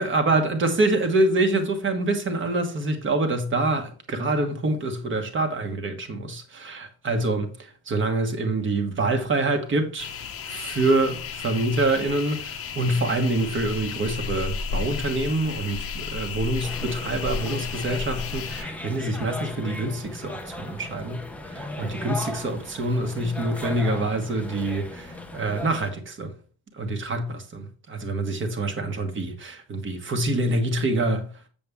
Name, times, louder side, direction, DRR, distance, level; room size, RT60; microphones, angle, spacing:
voice 1, 0.0-26.3 26.7-31.3, right 2 dB, 25° right, 1.3 m, -26 dB
sound 1, 10.0-18.6, left 6 dB, 30° left, 0.8 m, -33 dB
sound 2, 16.6-25.9, left 2 dB, 5° left, 0.5 m, -37 dB
7.6 x 6.9 x 3.6 m
cardioid pair, 160°, 44 cm